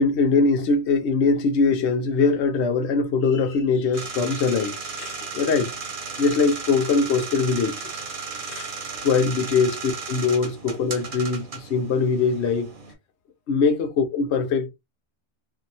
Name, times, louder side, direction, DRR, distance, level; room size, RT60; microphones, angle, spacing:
voice 1, 0.0-5.7 6.2-8.0 8.5-8.7 9.0-12.7 13.5-14.7, left 4 dB, 70° left, 0.9 m, -22 dB
sound 1, 3.9-12.9, right 5 dB, 50° right, 1.1 m, -35 dB
2.8 x 2.7 x 2.6 m
omnidirectional pair, 1.2 m